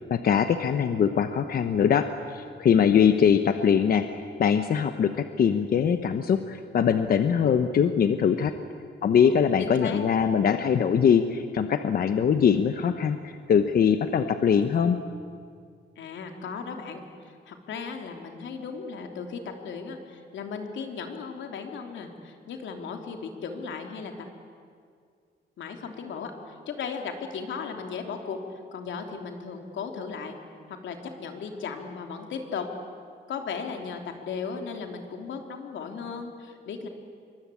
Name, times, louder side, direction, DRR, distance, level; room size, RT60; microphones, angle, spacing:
voice 1, 0.1-8.5 9.0-15.0, left 7 dB, 50° left, 8 dB, 1.0 m, -22 dB
voice 2, 9.6-10.0 16.0-17.0 17.5-24.1 25.6-28.4 28.7-30.4 30.8-32.7 33.3-36.9, left 5 dB, 90° left, 4 dB, 3.3 m, -36 dB
27.0 x 24.0 x 8.6 m, 2.2 s
wide cardioid pair, 170°, 19 cm